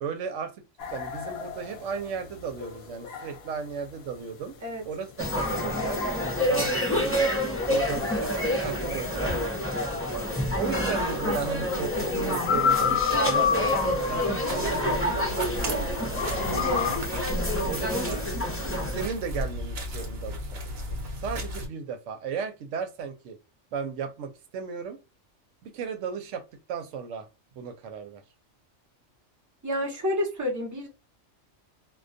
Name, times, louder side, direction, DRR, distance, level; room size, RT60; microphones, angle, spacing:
voice 1, 0.0-0.5 0.9-4.5 4.8-6.0 6.4-7.3 7.7-9.3 10.6-13.8 14.1-15.8 17.7-18.2 18.9-20.6 21.2-23.4 23.7-25.0 25.6-26.4 26.7-27.3 27.6-28.2, right 6 dB, 85° right, 0.9 m, -35 dB
sound 1, 0.8-15.7 16.1-17.0, left 7 dB, 65° left, 0.8 m, -31 dB
sound 2, 5.2-19.1, equal, 15° left, 0.4 m, -28 dB
sound 3, 14.5-21.7, equal, 65° right, 1.0 m, -35 dB
voice 2, 16.5-17.0 29.6-30.9, left 1 dB, 20° right, 0.7 m, -29 dB
2.2 x 2.2 x 2.5 m
omnidirectional pair, 1.2 m